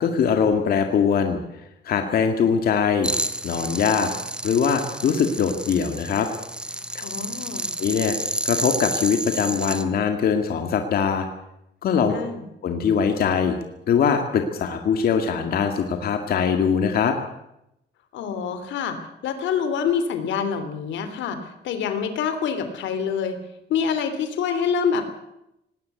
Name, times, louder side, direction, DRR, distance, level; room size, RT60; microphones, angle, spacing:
voice 1, 0.0-1.4 1.9-3.1 3.4-4.1 4.4-6.3 7.8-8.2 8.4-11.3 11.8-12.1 12.6-13.6 13.9-17.2, left 7 dB, 55° left, 5 dB, 2.0 m, -22 dB
sound 1, 3.0-9.8, right 1 dB, 5° right, 1.0 m, -30 dB
voice 2, 7.0-7.7 12.1-12.4 18.1-19.0 19.2-23.4 23.7-25.0, left 7 dB, 85° left, 9 dB, 3.1 m, -26 dB
19.0 x 18.0 x 8.4 m, 0.84 s
cardioid pair, 170°, 19 cm